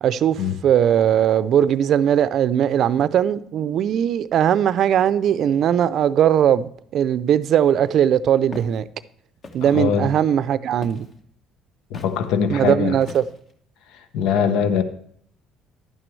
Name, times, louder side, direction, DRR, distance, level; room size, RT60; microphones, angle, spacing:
voice 1, 0.0-8.9 9.5-11.1 12.5-13.2, right 9 dB, 55° right, 0.5 m, -19 dB
Walk footsteps, 8.5-8.8 9.4-9.8 10.8-11.2 11.9-12.2 13.0-13.5, left 3 dB, 35° left, 1.2 m, -39 dB
voice 2, 9.6-10.1 11.9-12.9 13.9-14.8, left 7 dB, 75° left, 0.8 m, -22 dB
11.0 x 9.1 x 3.2 m
cardioid pair, 105°, 0 cm